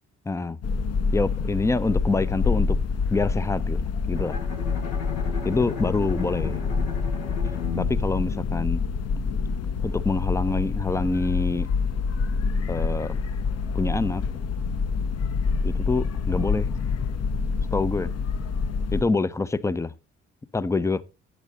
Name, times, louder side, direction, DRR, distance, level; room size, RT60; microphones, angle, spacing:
voice 1, 0.3-0.6 1.1-2.8 3.1-4.4 5.4-6.6 7.7-8.8 9.8-11.7 12.7-13.2 13.7-14.2 15.6-16.7 17.7-18.1 18.9-19.9 20.5-21.0, left 3 dB, 10° left, 0.5 m, -26 dB
sound 1, 0.6-19.0, left 5 dB, 40° left, 0.8 m, -27 dB
Bowed string instrument, 4.1-9.2, left 6 dB, 75° left, 1.4 m, -35 dB
12.0 x 8.9 x 2.7 m
figure-of-eight pair, 40°, 37 cm